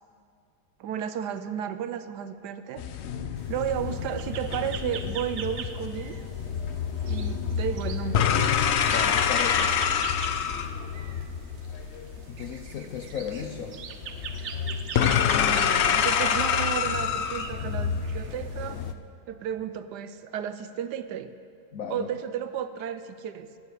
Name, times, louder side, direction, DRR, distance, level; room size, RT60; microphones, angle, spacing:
voice 1, 0.8-2.8 3.5-6.2 7.0-8.5 15.4-18.8 19.3-21.3 21.9-23.5, right 9 dB, 75° right, 12 dB, 1.1 m, -33 dB
sound 1, 2.8-18.9, left 7 dB, 90° left, 0.5 m, -27 dB
sound 2, 3.4-18.9, right 6 dB, 55° right, 0.8 m, -43 dB
voice 2, 8.9-9.8 12.3-13.8 21.7-22.1, left 7 dB, 60° left, 4 dB, 1.0 m, -35 dB
12.5 x 10.0 x 8.3 m, 2.3 s
omnidirectional pair, 1.9 m